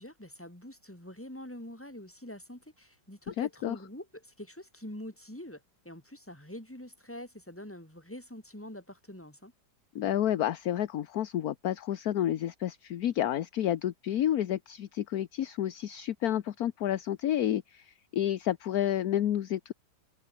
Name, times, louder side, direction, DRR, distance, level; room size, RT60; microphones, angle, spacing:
voice 1, 0.0-9.5, left 1 dB, 5° left, 4.8 m, -45 dB
voice 2, 3.3-3.8 9.9-19.7, left 11 dB, 60° left, 1.3 m, -30 dB
omnidirectional pair, 2.0 m